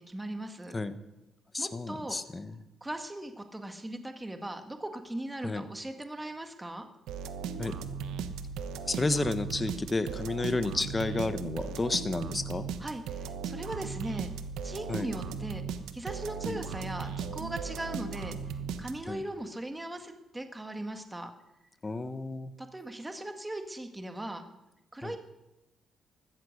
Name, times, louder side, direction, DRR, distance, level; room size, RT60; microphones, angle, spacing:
voice 1, 0.1-0.7 1.6-2.2 2.8-6.9 12.8-14.3 14.6-15.6 15.9-21.3 22.6-24.4 24.9-25.2, right 1 dB, 10° right, 6 dB, 1.7 m, -39 dB
voice 2, 1.5-2.6 5.4-5.7 7.6-7.8 8.9-12.6 14.9-15.1 16.4-16.6 19.1-19.2 21.8-22.5 25.0-25.2, left 2 dB, 20° left, 11 dB, 1.2 m, -31 dB
sound 1, 7.1-19.3, right 6 dB, 90° right, 1.0 m, -37 dB
15.0 x 13.5 x 6.5 m, 0.93 s
cardioid pair, 90°, 0 cm